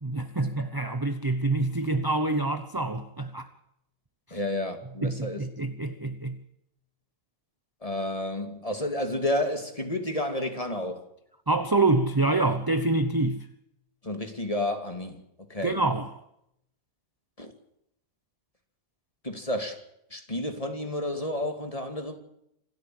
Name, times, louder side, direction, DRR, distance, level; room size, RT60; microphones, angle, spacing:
voice 1, 0.0-3.5 4.3-4.4 5.0-6.4 11.5-13.5 15.6-16.1, right 2 dB, 15° right, 0.8 m, -26 dB
voice 2, 4.3-5.4 7.8-11.0 14.0-15.2 15.5-15.8 17.4-17.5 19.2-19.8 20.1-22.1, left 1 dB, 20° left, 2.6 m, -31 dB
27.0 x 13.5 x 7.9 m
omnidirectional pair, 1.8 m